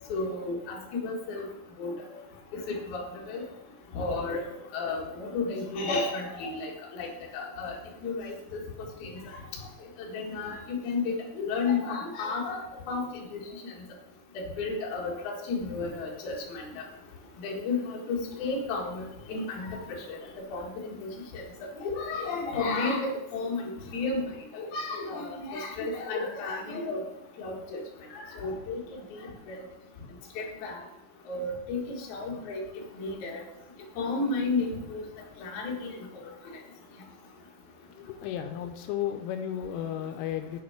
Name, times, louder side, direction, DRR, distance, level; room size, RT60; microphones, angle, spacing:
voice 1, 0.1-0.8 1.0-1.4 1.8-1.9 2.7-3.0 3.3-3.4 3.9-4.4 4.7-7.1 7.3-7.7 8.0-8.3 9.0-9.1 10.1-11.0 11.3-12.6 12.9-13.0 13.3-13.4 14.3-16.6 17.4-19.0 19.3-19.8 20.1-20.2 20.5-21.4 21.8-24.2 24.5-27.0 27.4-27.8 28.1-28.8 29.1-29.2 29.5-29.6 30.4-30.8 31.3-32.6 33.0-33.4 34.0-35.0 35.4-35.9, left 3 dB, 55° left, -2 dB, 2.4 m, -32 dB
voice 2, 38.0-40.6, left 10 dB, 85° left, 7 dB, 3.0 m, -34 dB
7.6 x 6.4 x 5.7 m, 0.87 s
omnidirectional pair, 5.7 m